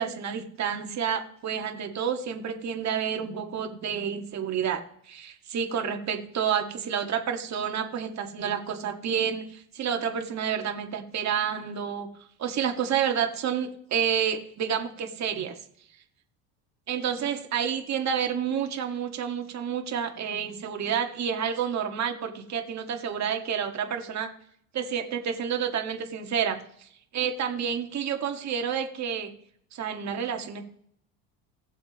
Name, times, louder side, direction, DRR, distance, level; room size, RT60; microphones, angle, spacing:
voice 1, 0.0-12.1 12.4-15.6 16.9-24.3 24.7-26.9 27.1-29.3 29.7-30.6, right 8 dB, 45° right, 4 dB, 1.9 m, -29 dB
19.5 x 7.2 x 3.1 m, 0.67 s
supercardioid pair, 100°, 40 cm